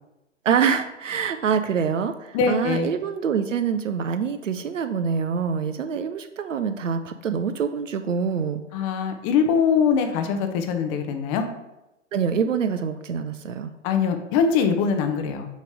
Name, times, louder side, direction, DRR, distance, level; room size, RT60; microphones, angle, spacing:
voice 1, 0.4-8.6 12.1-13.7, right 6 dB, 85° right, 9 dB, 0.5 m, -25 dB
voice 2, 2.3-2.9 8.7-11.5 13.8-15.5, left 6 dB, 25° left, 7 dB, 0.6 m, -22 dB
6.5 x 3.1 x 5.0 m, 0.94 s
figure-of-eight pair, 110°, 37 cm